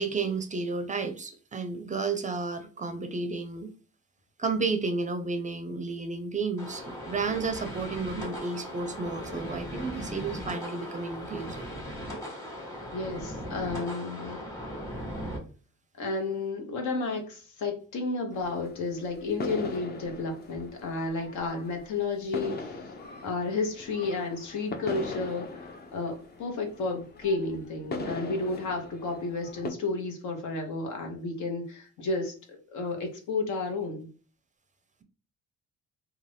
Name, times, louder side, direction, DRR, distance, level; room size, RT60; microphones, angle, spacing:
voice 1, 0.0-3.7 4.4-11.6, right 4 dB, 25° right, 0.4 m, -32 dB
sound 1, 6.6-15.4, equal, 10° left, 1.2 m, -38 dB
voice 2, 12.9-14.5 16.0-22.8 23.2-32.3 32.7-34.1, left 3 dB, 75° left, 0.9 m, -32 dB
sound 2, 18.3-29.7, left 3 dB, 35° left, 0.6 m, -40 dB
2.5 x 2.3 x 3.3 m
cardioid pair, 90°, 30 cm